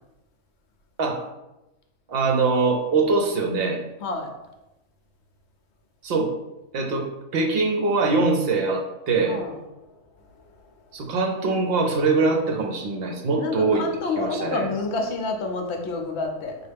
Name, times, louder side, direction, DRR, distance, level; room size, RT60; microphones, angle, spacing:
voice 1, 2.1-3.8 6.0-6.3 6.7-7.1 7.3-9.4 10.9-13.9 14.2-14.7, right 3 dB, 60° right, 2 dB, 0.7 m, -23 dB
voice 2, 4.0-4.3 9.3-9.5 13.3-16.6, left 3 dB, 65° left, 3 dB, 0.8 m, -28 dB
5.3 x 2.4 x 3.3 m, 0.99 s
omnidirectional pair, 1.3 m